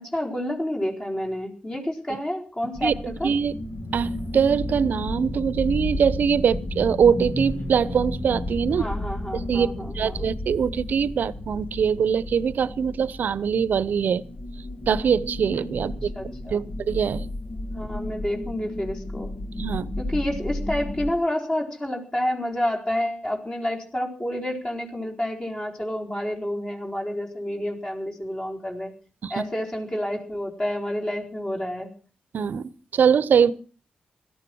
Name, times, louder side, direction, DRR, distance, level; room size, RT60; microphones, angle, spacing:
voice 1, 0.0-3.3 8.7-10.3 15.8-16.7 17.7-19.3 20.0-28.9 29.3-31.9, left 1 dB, 25° left, 4.5 m, -29 dB
sound 1, 2.7-21.1, left 1 dB, 50° left, 2.4 m, -33 dB
voice 2, 2.8-3.5 3.9-8.9 9.3-14.2 14.9-16.1 16.5-17.3 19.6-20.0 29.2-29.4 32.3-33.5, right 7 dB, 70° right, 0.8 m, -23 dB
17.5 x 13.5 x 6.3 m
cardioid pair, 60°, 3 cm